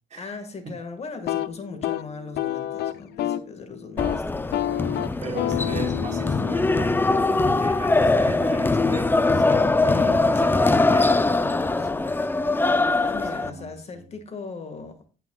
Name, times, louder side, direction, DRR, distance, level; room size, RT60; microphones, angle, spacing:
voice 1, 0.2-4.6 4.9-5.2 12.5-15.0, left 4 dB, 40° left, 1.9 m, -39 dB
sound 1, 1.1-3.5 3.8-4.2 4.5-8.4, left 12 dB, 75° left, 0.6 m, -30 dB
sound 2, 4.0-13.5, left 3 dB, 10° left, 0.6 m, -22 dB
voice 2, 5.2-11.3 11.6-12.1 13.3-14.0, right 3 dB, 40° right, 3.5 m, -38 dB
17.5 x 5.9 x 2.4 m
cardioid pair, 110°, 17 cm